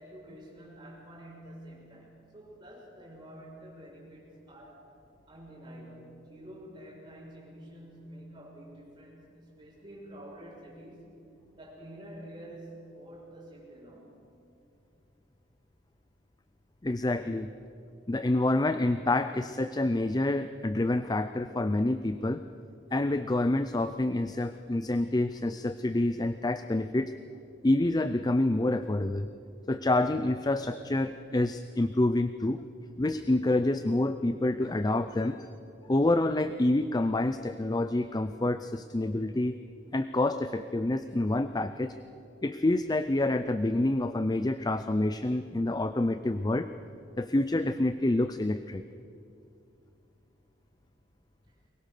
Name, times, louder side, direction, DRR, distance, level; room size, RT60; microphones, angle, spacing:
voice 1, 0.0-4.8 5.3-11.1 11.5-14.1 51.5-51.6, right 1 dB, 25° right, -4 dB, 6.9 m, -48 dB
voice 2, 16.8-17.5 18.1-22.4 22.9-27.1 27.6-29.3 29.7-32.6 33.0-35.5 35.9-39.6 39.9-41.9 42.4-46.7 47.2-48.8, left 2 dB, 20° left, 11 dB, 0.5 m, -27 dB
23.0 x 21.0 x 6.7 m, 2.6 s
head